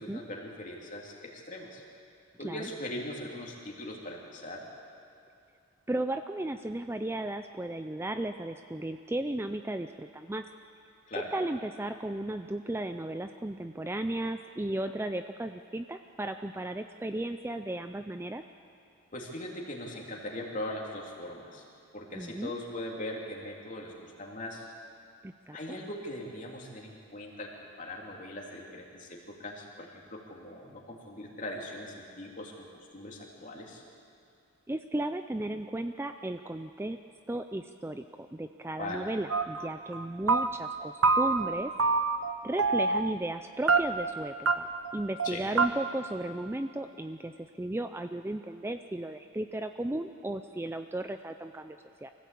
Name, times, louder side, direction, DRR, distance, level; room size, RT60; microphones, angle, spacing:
voice 1, 0.0-1.8 2.4-4.6 11.1-11.3 19.1-21.6 21.9-24.7 25.5-33.8 38.8-39.1 45.2-45.4, left 1 dB, 35° left, -1 dB, 3.1 m, -40 dB
voice 2, 5.9-10.5 11.3-18.4 22.1-22.5 25.2-25.8 34.7-37.0 37.3-41.7 42.4-44.7 44.9-52.1, right 1 dB, 10° right, 8 dB, 0.4 m, -35 dB
sound 1, 39.3-39.7 39.9-40.7 41.0-41.5 41.8-42.3 42.6-43.1 43.7-44.1 44.5-44.6 44.8-44.9 45.2-45.3 45.6-45.7, right 4 dB, 75° right, 1.0 m, -25 dB
24.0 x 16.0 x 8.5 m, 2.5 s
head